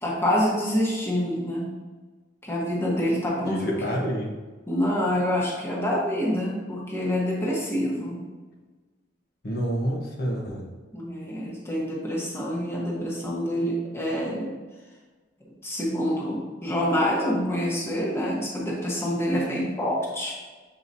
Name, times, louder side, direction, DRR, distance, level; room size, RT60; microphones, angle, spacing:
voice 1, 0.0-1.7 2.4-3.7 4.7-8.2 10.9-14.5 15.6-20.3, equal, 15° left, -4 dB, 1.2 m, -26 dB
voice 2, 3.4-4.3 9.4-10.7, equal, 60° left, -2 dB, 1.1 m, -28 dB
7.6 x 4.7 x 2.7 m, 1.3 s
head